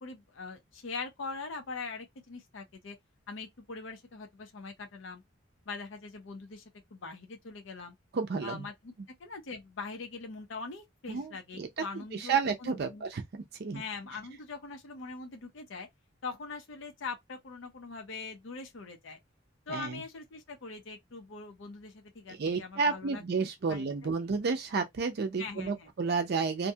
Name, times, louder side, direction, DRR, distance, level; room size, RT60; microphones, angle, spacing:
voice 1, 0.0-3.0 3.3-5.2 5.7-6.6 6.9-7.9 8.4-8.9 9.2-13.1 13.7-15.9 16.2-19.2 19.7-23.8 25.4-25.9, left 4 dB, 70° left, 0.6 m, -42 dB
voice 2, 8.1-8.7 11.1-11.7 11.9-13.8 19.7-20.0 22.3-26.7, right 4 dB, 50° right, 0.4 m, -31 dB
2.6 x 2.2 x 2.7 m
head